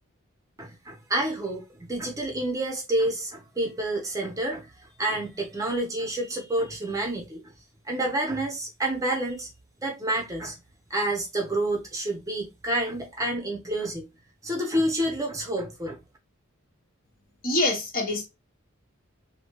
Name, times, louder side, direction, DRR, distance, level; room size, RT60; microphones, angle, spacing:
voice 1, 0.6-7.4 7.9-9.5 9.8-10.6 10.9-14.1 14.4-16.0, right 1 dB, 15° right, 0.7 m, -29 dB
voice 2, 17.4-18.3, left 2 dB, 40° left, 1.0 m, -25 dB
3.2 x 2.8 x 2.9 m
head